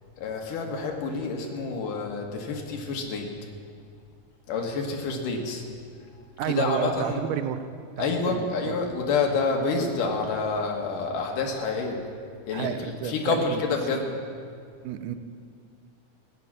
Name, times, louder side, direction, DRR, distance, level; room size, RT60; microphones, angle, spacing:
voice 1, 0.2-3.3 4.5-5.6 6.5-7.2 8.0-12.0 12.5-14.1, left 4 dB, 85° left, 2 dB, 3.1 m, -28 dB
voice 2, 6.4-7.6 8.0-8.8 12.5-13.6 14.8-15.2, right 10 dB, 80° right, 10 dB, 2.2 m, -31 dB
16.0 x 9.3 x 7.4 m, 2.2 s
omnidirectional pair, 3.7 m